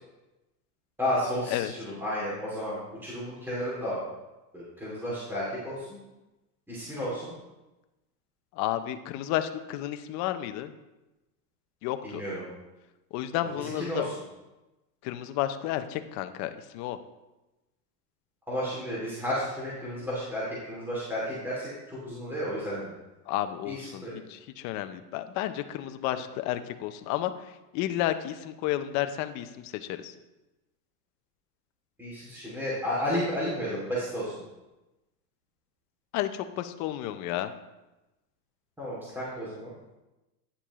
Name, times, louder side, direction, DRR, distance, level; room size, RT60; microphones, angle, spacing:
voice 1, 1.0-4.0 4.5-6.0 6.7-7.3 12.0-12.5 13.4-14.1 18.5-22.9 23.7-24.2 32.0-34.3 38.8-39.7, equal, 5° right, -8 dB, 2.5 m, -32 dB
voice 2, 8.6-10.7 11.8-12.2 13.1-14.1 15.0-17.0 23.3-27.3 27.7-30.1 36.1-37.5, left 13 dB, 35° left, 9 dB, 0.6 m, -31 dB
10.0 x 6.9 x 3.0 m, 1.0 s
supercardioid pair, 130°, 48 cm